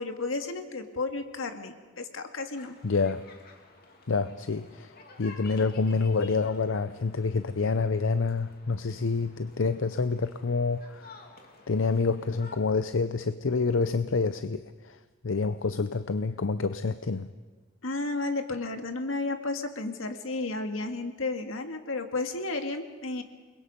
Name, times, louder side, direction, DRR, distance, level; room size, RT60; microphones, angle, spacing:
voice 1, 0.0-2.7 17.8-23.2, left 3 dB, 85° left, 6 dB, 2.0 m, -32 dB
sound 1, 2.5-12.6, left 3 dB, 50° left, 2.7 m, -53 dB
voice 2, 2.8-3.2 4.1-4.9 5.2-11.1 11.7-15.0 15.2-17.3, left 4 dB, 70° left, 11 dB, 0.6 m, -27 dB
29.0 x 21.5 x 5.4 m, 1.4 s
head